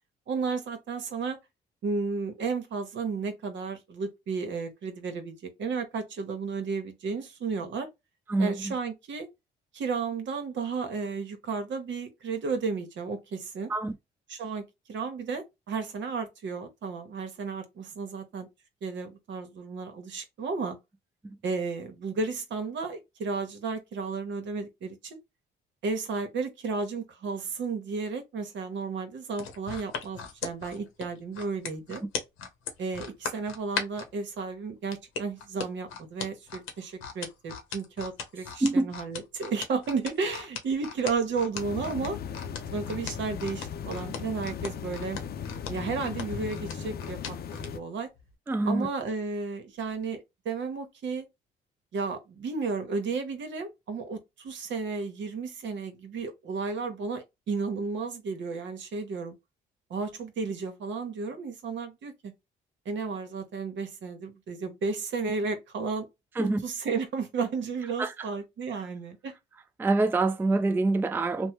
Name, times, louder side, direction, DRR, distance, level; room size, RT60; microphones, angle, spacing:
voice 1, 0.3-1.4 1.8-7.9 8.4-9.3 9.7-13.7 14.3-18.5 18.8-20.8 21.4-25.2 25.8-32.0 32.8-42.2 42.7-45.2 45.7-48.1 48.7-51.3 51.9-59.3 59.9-62.3 62.8-66.1 66.4-69.3, right 4 dB, 65° right, 1.0 m, -33 dB
voice 2, 8.3-8.7 13.7-13.9 21.2-21.4 38.6-38.9 48.5-48.9 66.4-66.6 68.0-68.3 69.8-71.5, right 2 dB, 10° right, 0.4 m, -26 dB
sound 1, 29.3-34.1 34.9-47.7 48.2-48.3, left 6 dB, 85° left, 0.8 m, -37 dB
sound 2, 41.5-47.8, left 7 dB, 50° left, 0.5 m, -37 dB
3.1 x 2.1 x 2.9 m
supercardioid pair, 70°, 21 cm